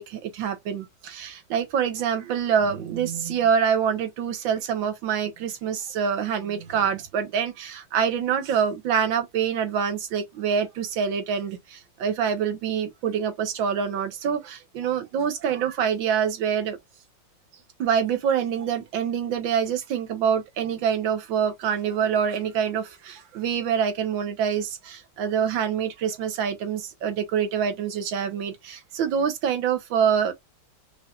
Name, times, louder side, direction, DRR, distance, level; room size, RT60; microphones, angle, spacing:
voice 1, 0.0-16.8 17.8-30.3, right 7 dB, 80° right, 1.7 m, -26 dB
5.5 x 2.6 x 2.3 m
omnidirectional pair, 2.1 m